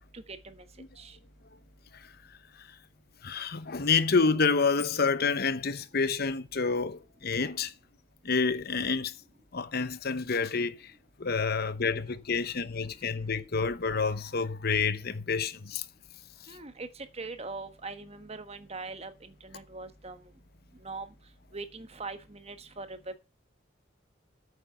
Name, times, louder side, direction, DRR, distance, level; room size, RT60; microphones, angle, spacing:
voice 1, 0.1-0.6 1.0-1.2 16.5-20.2 20.8-21.1 21.5-23.2, right 3 dB, 30° right, 1.3 m, -41 dB
voice 2, 3.2-7.7 8.2-9.1 9.5-10.9 11.2-15.8 16.5-16.6, left 4 dB, 55° left, 0.9 m, -28 dB
8.7 x 7.9 x 5.8 m
head